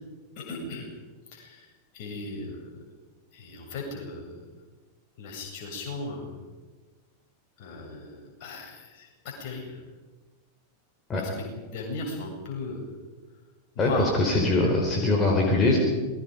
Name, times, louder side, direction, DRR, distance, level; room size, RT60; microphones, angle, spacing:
voice 1, 0.4-0.9 1.3-1.6 1.9-2.7 3.3-4.4 5.2-6.4 7.6-9.1 9.4-9.8 11.2-12.9 13.7-14.2, left 3 dB, 45° left, 0 dB, 7.6 m, -36 dB
voice 2, 13.8-15.8, left 2 dB, 25° left, 0 dB, 4.5 m, -22 dB
27.5 x 21.0 x 5.3 m, 1.3 s
figure-of-eight pair, 90°, 0 cm